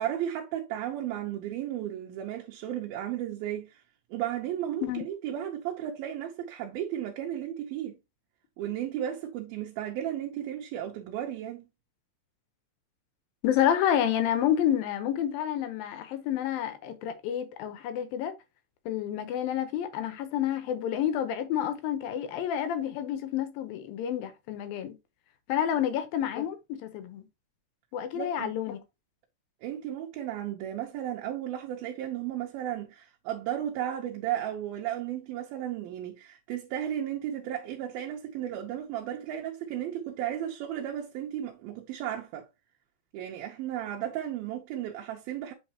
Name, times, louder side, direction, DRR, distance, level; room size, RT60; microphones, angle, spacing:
voice 1, 0.0-3.8 4.1-8.0 8.6-11.7 28.1-28.5 29.6-42.5 43.1-45.5, right 11 dB, 80° right, 2.7 m, -34 dB
voice 2, 13.4-18.3 18.9-24.9 25.5-27.3 27.9-28.8, left 10 dB, 75° left, 2.7 m, -29 dB
8.1 x 4.4 x 2.9 m
omnidirectional pair, 4.3 m